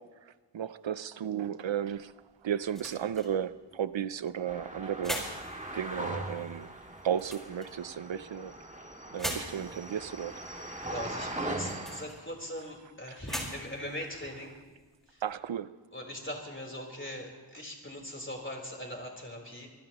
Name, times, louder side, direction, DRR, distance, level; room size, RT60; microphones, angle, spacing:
voice 1, 0.0-2.2 2.4-5.5 5.7-6.7 7.0-8.6 9.1-10.4 13.1-13.2 15.2-15.8, right 9 dB, 90° right, 15 dB, 0.6 m, -34 dB
sound 1, 1.8-15.3, equal, ahead, 4.6 m, -44 dB
sound 2, 4.5-12.0, right 1 dB, 15° right, 1.8 m, -40 dB
voice 2, 10.8-14.5 15.1-15.2 15.9-19.7, left 1 dB, 25° left, 0 dB, 3.7 m, -40 dB
25.0 x 19.5 x 3.0 m, 1.4 s
wide cardioid pair, 50°, 44 cm